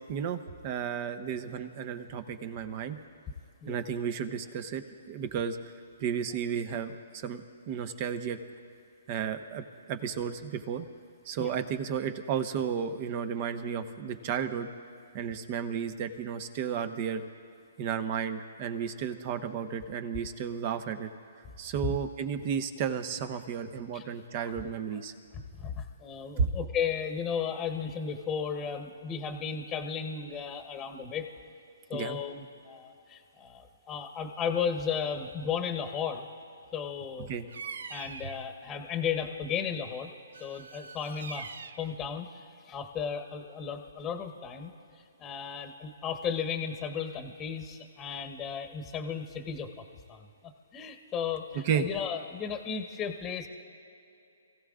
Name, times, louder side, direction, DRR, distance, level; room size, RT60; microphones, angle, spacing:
voice 1, 0.1-3.0 3.7-5.6 6.0-8.4 9.1-9.6 9.9-10.9 11.2-14.7 15.1-17.2 17.8-21.1 21.6-25.1 26.4-26.5 31.9-32.2 37.2-37.5 38.2-38.3 51.6-51.9, right 7 dB, 40° right, 9 dB, 1.0 m, -33 dB
voice 2, 25.3-31.3 31.9-36.3 36.7-37.3 37.9-40.1 40.4-41.5 41.8-44.7 45.2-49.7 50.1-50.2 50.7-53.5, left 7 dB, 20° left, 5 dB, 1.1 m, -34 dB
Bird vocalization bird call bird song, 37.5-38.5 40.3-41.9, right 5 dB, 70° right, 0.6 m, -43 dB
28.0 x 16.0 x 2.5 m, 2.7 s
hypercardioid pair, 135°, 0 cm